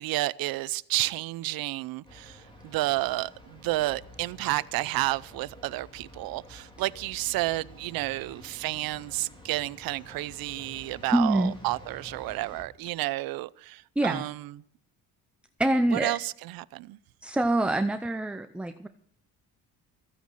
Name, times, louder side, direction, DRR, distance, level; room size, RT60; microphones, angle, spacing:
voice 1, 0.0-14.5 15.9-17.0, right 18 dB, 70° right, 0.6 m, -31 dB
sound 1, 2.0-12.6, left 1 dB, 15° left, 3.3 m, -50 dB
voice 2, 11.1-11.5 14.0-14.3 15.6-16.2 17.2-18.9, right 1 dB, 5° right, 0.5 m, -25 dB
15.0 x 9.4 x 6.3 m
cardioid pair, 125°, 37 cm